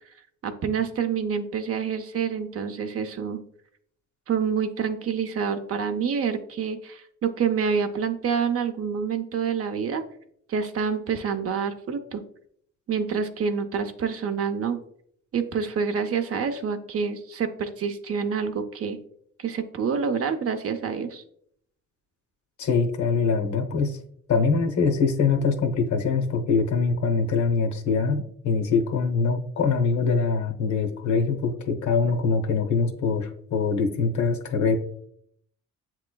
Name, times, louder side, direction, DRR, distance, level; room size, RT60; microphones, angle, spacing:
voice 1, 0.4-3.4 4.3-10.0 10.5-12.2 12.9-14.8 15.3-19.0 19.4-21.2, right 6 dB, 50° right, 8 dB, 0.6 m, -27 dB
voice 2, 22.6-24.0 24.3-34.8, left 4 dB, 70° left, 5 dB, 0.9 m, -23 dB
7.5 x 3.0 x 2.2 m, 0.67 s
cardioid pair, 90°, 30 cm